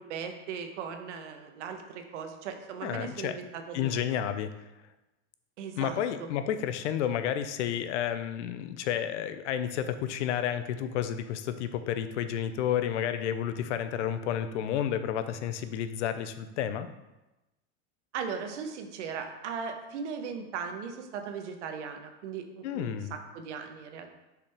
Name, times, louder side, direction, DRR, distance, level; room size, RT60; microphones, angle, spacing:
voice 1, 0.0-4.0 5.6-6.3 18.1-24.1, right 6 dB, 90° right, 5 dB, 1.0 m, -38 dB
voice 2, 2.8-3.4 3.7-4.5 5.8-16.9 22.6-23.1, left 9 dB, 80° left, 11 dB, 0.7 m, -31 dB
6.8 x 5.0 x 3.4 m, 1.0 s
supercardioid pair, 130°, 35 cm